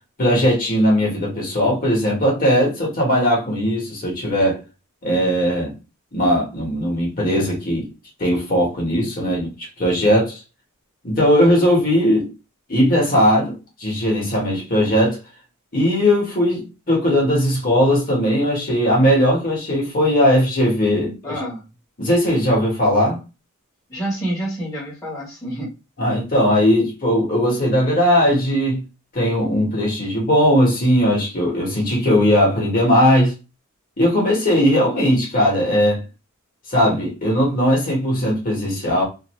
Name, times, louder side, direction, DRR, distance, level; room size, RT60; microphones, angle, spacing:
voice 1, 0.2-4.6 5.0-5.7 6.1-7.9 8.2-10.4 11.0-12.3 12.7-15.2 15.7-21.4 22.0-23.2 26.0-28.8 29.1-33.3 34.0-36.0 36.7-39.0, equal, 40° left, 1.2 m, -18 dB
voice 2, 21.2-21.6 23.9-25.7, right 1 dB, 15° left, 1.1 m, -28 dB
2.6 x 2.5 x 3.0 m
head